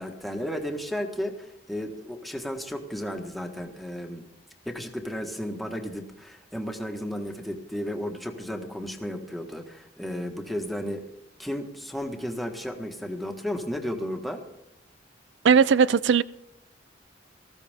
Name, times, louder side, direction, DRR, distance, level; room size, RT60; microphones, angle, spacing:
voice 1, 0.0-4.2 4.6-11.1 11.4-14.4, equal, ahead, 3 dB, 1.6 m, -33 dB
voice 2, 15.4-16.2, right 6 dB, 80° right, 18 dB, 0.4 m, -18 dB
19.5 x 15.0 x 3.6 m, 0.84 s
head